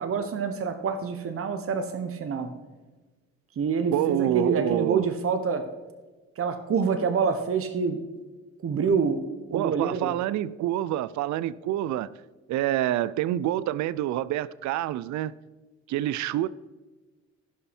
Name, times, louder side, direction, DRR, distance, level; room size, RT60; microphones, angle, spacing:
voice 1, 0.0-2.5 3.6-5.6 6.4-8.0 8.6-9.2 9.5-10.1, right 5 dB, 50° right, 1.1 m, -26 dB
voice 2, 3.9-5.0 8.7-8.8 9.5-12.1 12.5-15.3 15.9-16.5, right 13 dB, 70° right, 0.4 m, -27 dB
16.0 x 5.6 x 4.4 m
cardioid pair, 90°, 30 cm